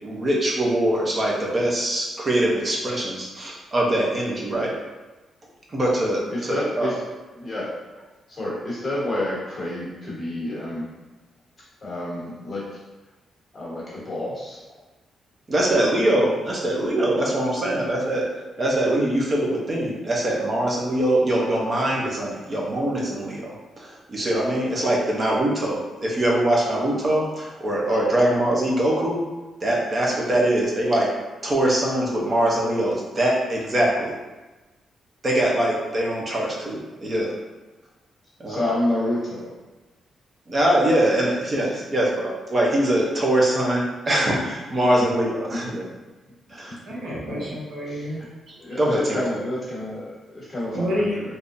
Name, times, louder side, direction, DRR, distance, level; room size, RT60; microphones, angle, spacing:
voice 1, 0.0-4.7 5.7-6.9 15.5-18.2 18.6-29.2 29.6-31.1 31.4-34.1 35.2-37.3 38.4-38.6 40.5-45.8 46.5-46.8 47.3-47.5 48.7-49.2, right 1 dB, 30° right, -3 dB, 0.7 m, -23 dB
voice 2, 6.3-6.9 7.4-7.7 8.3-10.9 11.8-12.8 13.5-14.6 38.5-39.5 45.5-45.6 46.7-46.8 47.1-47.2 48.6-51.2, left 1 dB, 20° left, -7 dB, 1.3 m, -29 dB
voice 3, 46.8-48.7 50.7-51.2, equal, 55° right, -5 dB, 0.9 m, -29 dB
3.6 x 2.6 x 2.6 m, 1.2 s
wide cardioid pair, 155°, 0 cm